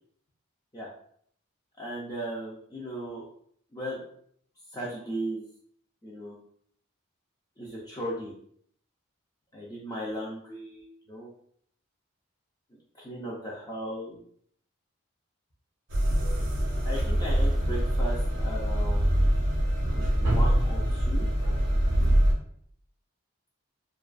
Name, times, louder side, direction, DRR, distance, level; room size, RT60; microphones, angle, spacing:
voice 1, 1.8-3.2 3.7-4.0 4.7-5.4 6.0-6.3 7.6-8.3 9.5-11.3 13.0-14.2 16.8-19.1 20.2-21.3, equal, 20° left, -5 dB, 0.4 m, -36 dB
sound 1, 15.9-22.3, equal, 70° right, 0.6 m, -24 dB
2.3 x 2.2 x 2.4 m, 0.63 s
head